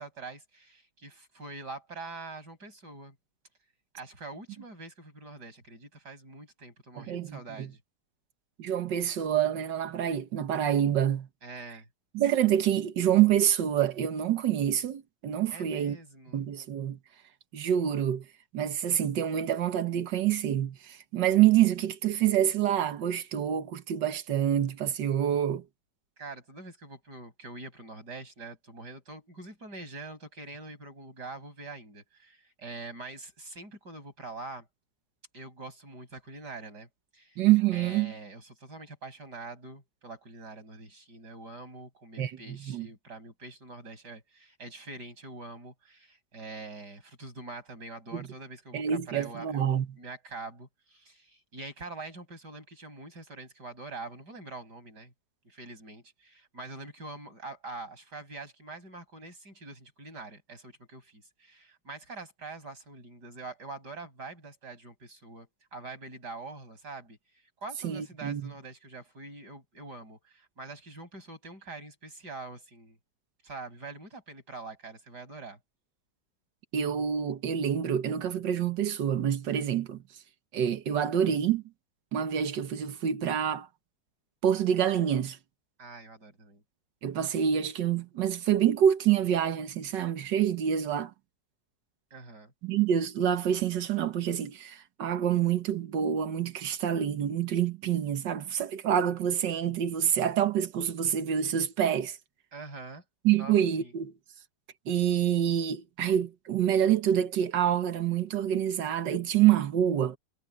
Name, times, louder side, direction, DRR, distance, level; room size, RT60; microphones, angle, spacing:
voice 1, 0.0-3.2 3.9-7.8 11.4-11.9 15.5-16.4 26.2-34.7 35.3-37.4 37.7-49.7 50.0-55.1 55.4-67.2 67.6-73.0 73.4-75.6 85.8-86.6 92.1-92.5 102.5-103.0 103.4-103.9, right 3 dB, 70° right, 8.2 m, -44 dB
voice 2, 7.0-7.7 8.6-11.3 12.1-16.0 16.3-17.0 17.5-18.3 18.5-25.6 37.4-38.1 42.2-42.9 48.1-48.2 48.7-49.9 67.8-68.5 76.7-80.0 80.5-81.6 82.1-83.7 84.4-85.4 87.0-91.1 92.6-102.2 103.3-104.1 104.9-110.2, right 10 dB, 85° right, 1.9 m, -27 dB
omnidirectional pair, 1.9 m